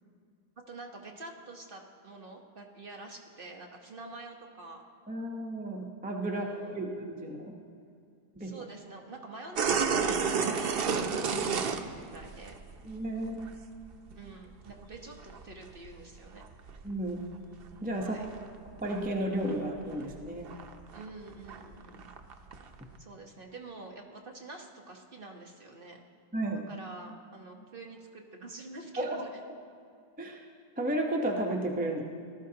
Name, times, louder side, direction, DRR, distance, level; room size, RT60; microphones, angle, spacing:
voice 1, 0.7-4.8 6.3-6.8 8.4-12.5 14.1-16.4 18.0-18.2 20.9-22.0 23.0-26.0 26.7-29.4, right 2 dB, 35° right, 1 dB, 1.0 m, -47 dB
voice 2, 5.1-7.5 8.4-8.5 12.8-13.5 16.8-17.2 17.8-18.2 18.8-20.5 26.3-26.6 29.0-29.2 30.2-30.4 30.8-32.0, right 1 dB, 10° right, 1 dB, 0.4 m, -33 dB
sound 1, 9.6-13.0 13.2-13.6 13.9-15.9 16.4-17.3 17.6-19.1 19.4-19.7 19.9-22.9, right 5 dB, 85° right, 0.5 m, -31 dB
18.5 x 13.0 x 2.8 m, 2.4 s
omnidirectional pair, 1.9 m